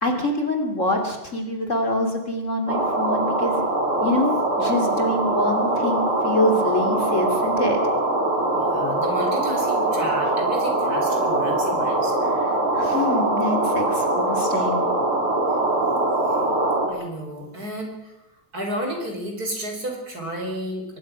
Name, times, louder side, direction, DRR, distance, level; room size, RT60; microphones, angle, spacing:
voice 1, 0.0-3.6 4.0-7.8 12.2-14.9, left 1 dB, 35° left, 3 dB, 3.2 m, -25 dB
sound 1, 2.7-16.9, right 2 dB, 85° right, 5.6 m, -22 dB
voice 2, 8.5-12.1 16.9-18.1 18.5-21.0, right 1 dB, 45° right, 2 dB, 5.3 m, -32 dB
23.5 x 21.5 x 6.2 m, 0.91 s
omnidirectional pair, 2.4 m